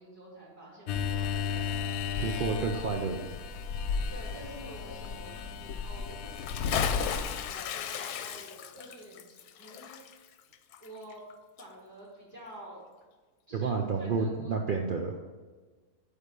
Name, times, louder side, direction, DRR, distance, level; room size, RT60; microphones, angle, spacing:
voice 1, 0.0-1.7 2.1-3.1 4.1-10.2 10.8-11.2 11.6-12.8 13.5-14.6, right 1 dB, 10° left, -9 dB, 2.4 m, -49 dB
sound 1, 0.9-7.5, left 6 dB, 65° left, 0.7 m, -34 dB
voice 2, 2.2-3.3 13.5-15.2, right 4 dB, 70° right, 3 dB, 0.4 m, -30 dB
Bathtub (filling or washing) / Splash splatter, 6.3-11.3 11.6-11.7, left 8 dB, 90° left, 1.2 m, -35 dB
9.2 x 3.6 x 6.6 m, 1.4 s
omnidirectional pair, 1.6 m